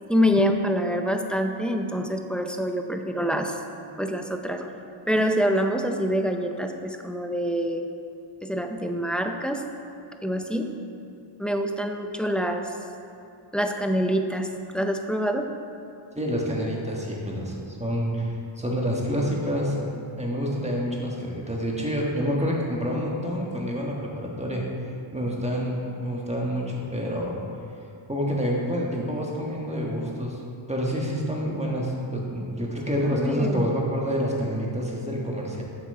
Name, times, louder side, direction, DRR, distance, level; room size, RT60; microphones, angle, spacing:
voice 1, 0.1-3.6 4.0-4.7 5.1-7.9 8.4-9.7 10.2-10.7 11.4-12.8 13.5-14.5 14.7-15.5 33.1-33.7, equal, ahead, 4 dB, 0.5 m, -26 dB
voice 2, 16.1-19.9 20.2-24.6 25.1-27.4 28.1-30.4 30.7-35.6, equal, 15° right, -3 dB, 1.4 m, -28 dB
7.6 x 6.1 x 4.2 m, 2.6 s
wide cardioid pair, 60°, 50 cm